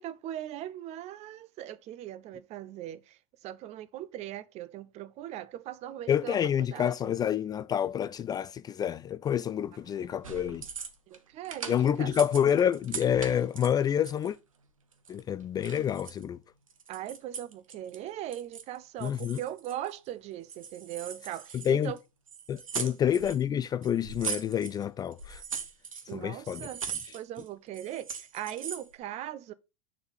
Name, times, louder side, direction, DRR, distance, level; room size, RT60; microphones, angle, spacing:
voice 1, 0.0-7.1 9.9-10.4 11.1-12.1 16.9-22.0 22.8-23.0 26.1-26.8 27.1-29.5, right 12 dB, 40° right, 0.6 m, -40 dB
voice 2, 6.1-10.6 11.7-14.4 15.1-16.4 19.0-19.4 21.6-21.9 22.5-25.4 26.1-26.7, left 9 dB, 25° left, 0.3 m, -28 dB
sound 1, 10.2-11.2 11.4-14.4 14.9-16.2 16.7-18.0 18.3-18.8 19.0-20.1 20.5-22.0 22.3-23.4 23.8-24.8 25.1-26.1 26.4-27.5 27.7-28.9, right 6 dB, 85° right, 1.1 m, -40 dB
6.8 x 4.2 x 5.0 m
hypercardioid pair, 90°, 17 cm